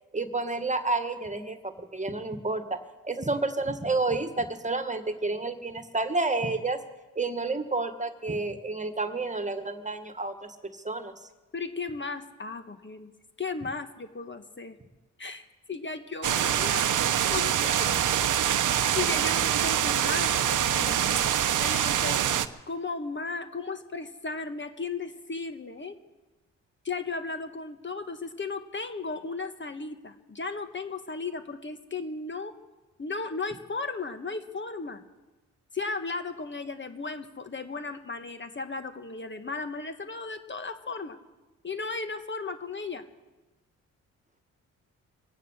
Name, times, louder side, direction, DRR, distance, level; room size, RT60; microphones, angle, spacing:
voice 1, 0.1-6.8 7.2-11.1, right 3 dB, 20° right, 8 dB, 1.7 m, -30 dB
voice 2, 11.5-13.1 13.4-14.8 15.2-17.0 17.3-18.1 18.9-26.0 26.8-32.5 33.0-35.0 35.7-41.2 41.6-43.0, left 4 dB, 35° left, 8 dB, 1.5 m, -35 dB
sound 1, 16.2-22.5, right 10 dB, 65° right, 0.9 m, -25 dB
24.0 x 9.3 x 6.5 m, 1.1 s
supercardioid pair, 55°, 34 cm